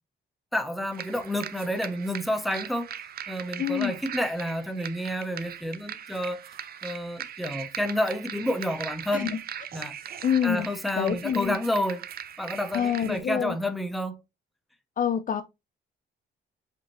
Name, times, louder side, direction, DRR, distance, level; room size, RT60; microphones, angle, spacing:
voice 1, 0.5-2.9 3.3-6.5 6.8-9.3 9.7-10.0 10.4-12.1 12.4-14.2, left 1 dB, ahead, 0.6 m, -29 dB
sound 1, 0.9-13.2, right 9 dB, 50° right, 0.5 m, -40 dB
voice 2, 3.6-3.9 9.1-9.4 10.2-10.7 10.9-11.6 12.7-13.6 15.0-15.4, left 8 dB, 45° left, 0.5 m, -26 dB
5.2 x 2.8 x 2.9 m
cardioid pair, 90°, 20 cm